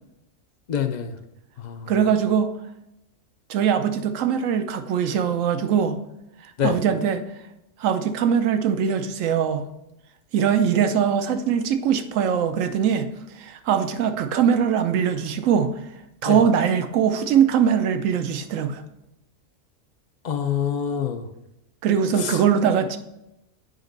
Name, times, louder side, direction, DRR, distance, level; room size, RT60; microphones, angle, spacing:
voice 1, 0.7-1.1 1.6-1.9 6.6-6.7 16.3-16.4 20.2-21.2 22.2-22.4, left 8 dB, 50° left, 8 dB, 0.5 m, -26 dB
voice 2, 1.9-2.5 3.5-6.0 6.6-7.2 7.8-9.7 10.3-13.1 13.4-15.8 16.2-18.8 21.8-23.0, right 8 dB, 80° right, 9 dB, 1.1 m, -21 dB
8.1 x 5.2 x 3.9 m, 0.87 s
omnidirectional pair, 1.4 m